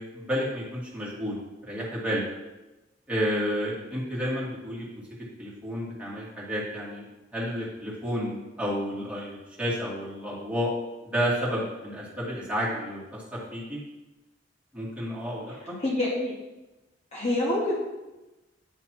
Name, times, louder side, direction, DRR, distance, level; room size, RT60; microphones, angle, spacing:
voice 1, 0.0-2.2 3.1-4.9 5.4-7.1 7.3-10.7 11.0-13.8 14.7-15.8, equal, 5° right, -7 dB, 2.0 m, -31 dB
voice 2, 15.8-16.3 17.1-17.8, left 1 dB, 35° left, -5 dB, 1.2 m, -26 dB
9.1 x 3.3 x 4.4 m, 1.1 s
head